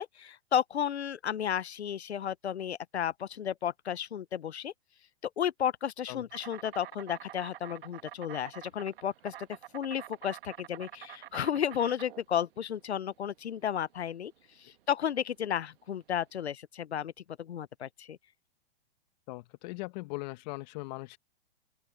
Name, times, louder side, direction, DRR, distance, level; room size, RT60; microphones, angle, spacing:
voice 1, 0.0-4.7 5.4-9.3 9.7-14.3 14.6-17.1 17.4-18.2, left 9 dB, 90° left, 0.8 m, -33 dB
Insect, 6.3-16.3, right 13 dB, 60° right, 1.3 m, -48 dB
voice 2, 19.3-21.2, left 24 dB, 40° left, 1.6 m, -39 dB
open air
hypercardioid pair, 125°, 32 cm